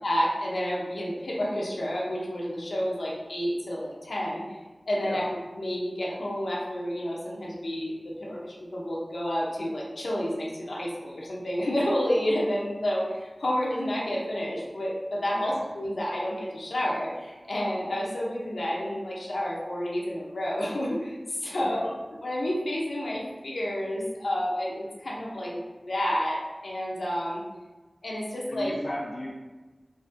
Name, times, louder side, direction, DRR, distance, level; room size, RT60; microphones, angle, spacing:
voice 1, 0.0-4.6 4.9-5.3 5.5-7.9 8.2-21.9 22.2-27.4 28.0-28.7, equal, 90° left, -4 dB, 0.8 m, -30 dB
voice 2, 21.4-21.9 28.5-29.4, left 1 dB, 50° left, -3 dB, 0.5 m, -36 dB
4.1 x 3.1 x 2.6 m, 1.2 s
wide cardioid pair, 65°, 0 cm